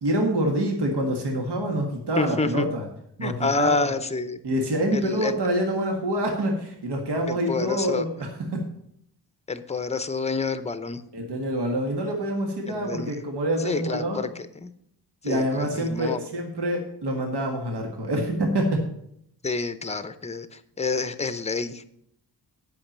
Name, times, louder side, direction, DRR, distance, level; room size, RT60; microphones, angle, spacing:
voice 1, 0.0-2.8 3.2-3.9 4.4-8.6 11.1-14.3 15.2-18.8, right 1 dB, 75° right, 2 dB, 1.7 m, -26 dB
voice 2, 2.2-2.7 3.2-4.4 4.9-5.4 7.3-8.0 9.5-11.0 12.7-13.2 13.6-14.7 15.2-16.2 19.4-21.8, left 4 dB, 15° left, 12 dB, 0.7 m, -28 dB
8.6 x 5.9 x 7.3 m, 0.72 s
wide cardioid pair, 105°, 41 cm